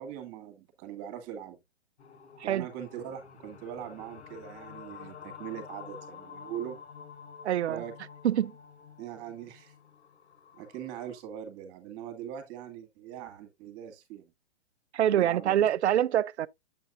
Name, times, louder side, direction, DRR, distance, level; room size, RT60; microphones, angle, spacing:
voice 1, 0.0-1.6 2.4-6.8 7.7-7.9 9.0-9.7 10.5-14.3 15.1-15.7, right 10 dB, 35° right, 2.1 m, -41 dB
sound 1, 2.0-11.2, left 7 dB, 70° left, 2.2 m, -49 dB
voice 2, 7.4-7.8 8.2-8.5 14.9-16.5, right 11 dB, 80° right, 0.5 m, -25 dB
8.0 x 6.9 x 2.6 m
hypercardioid pair, 130°, 34 cm